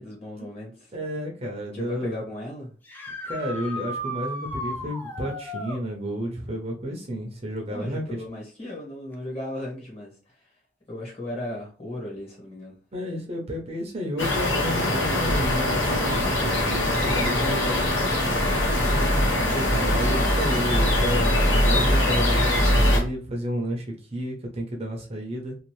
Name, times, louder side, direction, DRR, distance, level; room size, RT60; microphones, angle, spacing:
voice 1, 0.0-0.9 1.7-2.7 7.7-10.5 10.9-12.8 21.1-21.6, left 1 dB, 30° left, 1.4 m, -37 dB
voice 2, 0.9-2.2 3.2-8.2 12.9-18.0 19.5-25.6, equal, 30° right, 0.6 m, -31 dB
sound 1, 2.8-5.8 9.1-9.2 11.3-11.4 17.6-17.7, equal, 10° left, 0.5 m, -35 dB
sound 2, 14.2-23.0, left 1 dB, 70° left, 1.1 m, -22 dB
2.6 x 2.5 x 3.1 m
head